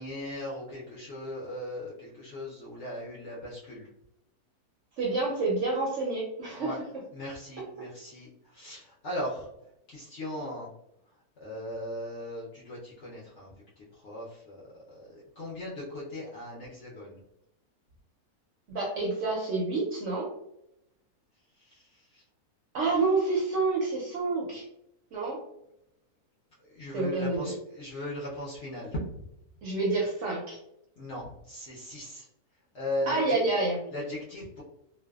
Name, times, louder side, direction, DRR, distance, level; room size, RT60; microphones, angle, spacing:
voice 1, 0.0-3.9 6.6-6.8 7.1-9.5 9.9-10.7 11.4-14.6 14.9-17.2 21.7-21.9 22.1-22.2 26.7-29.0 31.0-32.3 32.7-33.4 33.9-34.6, left 1 dB, 65° left, -5 dB, 0.7 m, -38 dB
voice 2, 5.0-6.7 18.7-20.3 22.7-24.6 25.1-25.4 26.9-27.5 29.6-30.6 33.1-33.8, right 3 dB, 65° right, -3 dB, 0.8 m, -28 dB
2.5 x 2.1 x 2.2 m, 0.80 s
omnidirectional pair, 1.7 m